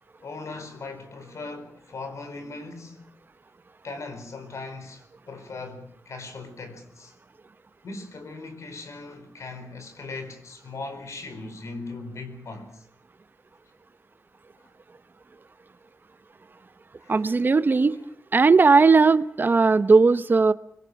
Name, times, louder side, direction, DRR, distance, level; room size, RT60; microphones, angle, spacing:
voice 1, 0.2-3.0 3.8-7.1 7.8-12.8 17.0-17.3 17.8-18.0, left 3 dB, 70° left, 4.6 m, -39 dB
voice 2, 17.1-18.0 18.3-20.5, right 4 dB, 40° right, 0.9 m, -17 dB
25.0 x 22.5 x 6.0 m
wide cardioid pair, 175°, 5 cm